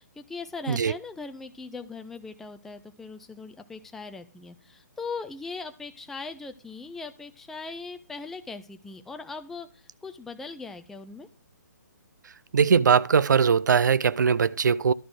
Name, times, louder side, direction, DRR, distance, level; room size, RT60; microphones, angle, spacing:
voice 1, 0.0-11.3, left 4 dB, 5° left, 0.3 m, -39 dB
voice 2, 12.5-14.9, right 6 dB, 80° right, 0.4 m, -21 dB
11.5 x 4.0 x 6.3 m
hypercardioid pair, 145°, 10 cm